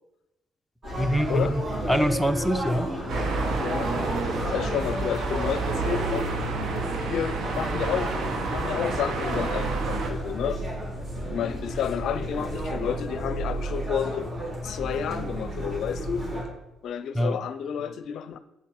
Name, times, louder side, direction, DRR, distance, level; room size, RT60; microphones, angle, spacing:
sound 1, 0.8-16.4, equal, 40° right, 3.7 m, -32 dB
voice 1, 0.9-2.9 17.1-17.4, equal, ahead, 0.7 m, -25 dB
sound 2, 3.1-10.1, right 4 dB, 65° right, 1.2 m, -30 dB
voice 2, 3.6-3.9 4.4-6.3 6.8-10.6 11.3-14.3 14.6-16.3 16.8-18.4, left 8 dB, 65° left, 0.5 m, -31 dB
8.2 x 6.9 x 4.7 m
supercardioid pair, 60°, 0 cm